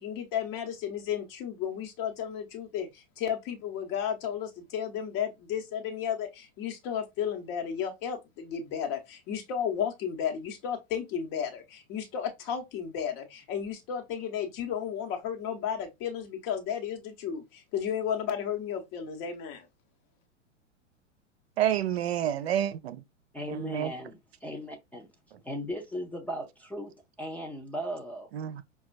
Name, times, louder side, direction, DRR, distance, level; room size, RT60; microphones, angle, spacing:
voice 1, 0.0-19.7, left 8 dB, 35° left, 1.2 m, -33 dB
voice 2, 21.6-23.0 23.5-23.9 28.3-28.6, right 10 dB, 55° right, 0.6 m, -29 dB
voice 3, 23.3-25.1 25.4-26.9 27.2-28.3, equal, 5° left, 0.5 m, -37 dB
5.9 x 2.3 x 2.4 m
figure-of-eight pair, 95°, 37 cm